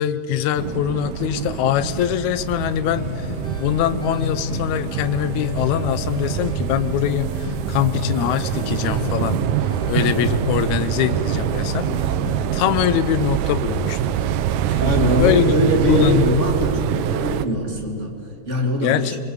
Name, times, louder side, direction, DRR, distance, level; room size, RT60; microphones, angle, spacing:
voice 1, 0.0-3.3 3.6-9.4 9.9-11.9 12.5-14.0 15.2-15.5 15.9-16.2 18.8-19.1, left 11 dB, 80° left, 14 dB, 2.2 m, -23 dB
sound 1, 0.6-17.5, right 10 dB, 85° right, 2.2 m, -25 dB
sound 2, 2.9-12.6 14.9-15.7, left 4 dB, 45° left, 0.7 m, -32 dB
voice 2, 14.7-18.2 18.5-19.2, equal, 25° right, 2 dB, 2.7 m, -21 dB
24.0 x 22.0 x 7.2 m, 2.8 s
omnidirectional pair, 3.3 m